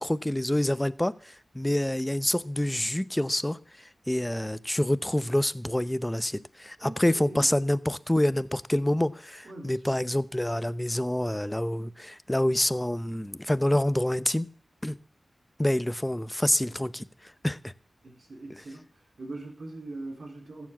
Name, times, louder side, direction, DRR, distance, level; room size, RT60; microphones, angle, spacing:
voice 1, 0.0-14.5 14.8-15.0 15.6-17.7, left 1 dB, 15° left, 16 dB, 0.8 m, -27 dB
voice 2, 6.8-7.5 9.4-10.0 18.0-18.9 19.2-20.7, right 2 dB, 70° right, 1 dB, 4.4 m, -41 dB
15.0 x 7.2 x 7.5 m, 0.44 s
cardioid pair, 55°, 0 cm